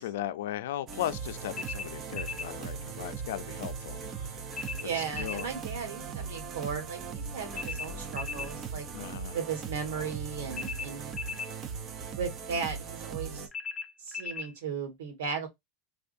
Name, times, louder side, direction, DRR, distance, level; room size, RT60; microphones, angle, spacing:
voice 1, 0.0-4.4 5.2-5.5 8.9-9.4, left 12 dB, 80° left, 0.4 m, -37 dB
sound 1, 0.9-13.5, right 6 dB, 30° right, 0.6 m, -39 dB
sound 2, 1.5-2.5 4.5-5.5 7.5-8.5 10.5-11.5 13.5-14.5, left 6 dB, 20° left, 0.4 m, -38 dB
voice 2, 4.8-8.9 9.3-11.1 12.1-13.5 14.0-15.5, right 6 dB, 90° right, 1.4 m, -36 dB
3.4 x 2.3 x 2.6 m
supercardioid pair, 145°, 0 cm